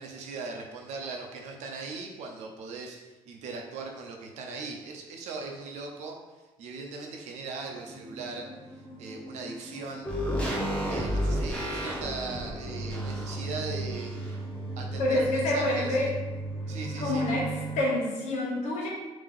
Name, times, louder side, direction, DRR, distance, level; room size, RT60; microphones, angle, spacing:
voice 1, 0.0-6.2 6.6-8.5 9.0-10.1 10.9-14.4 14.8-16.1 16.7-17.4, right 4 dB, 85° right, 2 dB, 0.7 m, -39 dB
sound 1, 7.6-17.8, right 2 dB, 45° left, 0.9 m, -38 dB
sound 2, 10.1-14.5 14.8-14.9, equal, 10° left, 0.7 m, -32 dB
voice 2, 15.0-16.1 17.0-18.9, left 1 dB, 80° left, -3 dB, 1.1 m, -27 dB
3.6 x 2.8 x 3.7 m, 1.1 s
cardioid pair, 170°, 12 cm